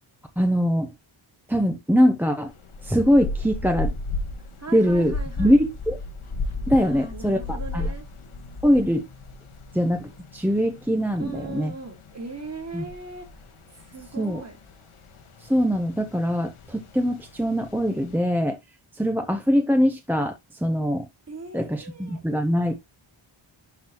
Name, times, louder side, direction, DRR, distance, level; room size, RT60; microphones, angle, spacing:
voice 1, 0.4-0.9 1.5-2.5 2.8-3.9 4.7-6.0 6.7-7.9 8.6-9.1 9.7-11.7 12.7-12.8 14.2-14.4 15.4-18.6 18.9-21.1 21.5-22.8, equal, 5° right, 0.8 m, -22 dB
sound 1, 2.5-18.2, left 3 dB, 75° left, 1.7 m, -36 dB
voice 2, 4.6-5.6 6.8-8.0 11.2-13.3 13.9-14.6 21.3-22.2, right 3 dB, 30° right, 2.4 m, -38 dB
11.5 x 4.0 x 3.0 m
wide cardioid pair, 145°, 50 cm